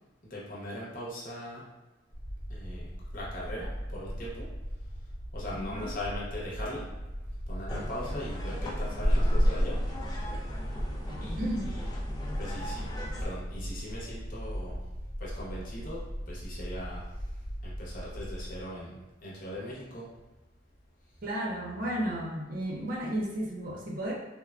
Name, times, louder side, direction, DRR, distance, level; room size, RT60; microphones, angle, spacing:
voice 1, 0.3-1.6 2.5-4.5 5.3-6.9 7.5-9.8 11.2-11.9 12.4-12.8 13.2-14.7 15.2-17.0 17.6-20.1, equal, 50° left, -6 dB, 0.9 m, -40 dB
sound 1, 2.1-18.6, equal, 5° right, 0.9 m, -39 dB
voice 2, 5.5-5.9 11.4-11.7 21.2-24.1, right 1 dB, 50° right, -3 dB, 0.6 m, -33 dB
sound 2, 7.7-13.2, equal, 25° left, 0.4 m, -30 dB
3.3 x 2.2 x 2.4 m, 1.1 s
head